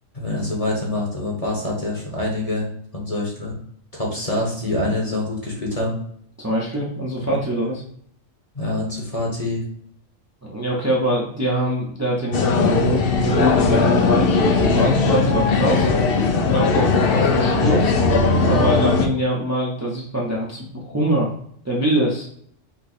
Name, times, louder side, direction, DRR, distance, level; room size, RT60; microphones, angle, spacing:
voice 1, 0.1-2.7 2.9-3.5 3.9-5.9 7.2-7.4 8.5-9.6, left 2 dB, 30° left, -2 dB, 1.2 m, -25 dB
voice 2, 6.4-7.8 10.4-15.9 16.5-17.9 18.5-21.3 21.6-22.3, right 1 dB, 15° right, -4 dB, 0.7 m, -23 dB
sound 1, 12.3-19.1, left 4 dB, 55° left, 0.7 m, -18 dB
5.3 x 2.3 x 4.2 m, 0.65 s
omnidirectional pair, 1.4 m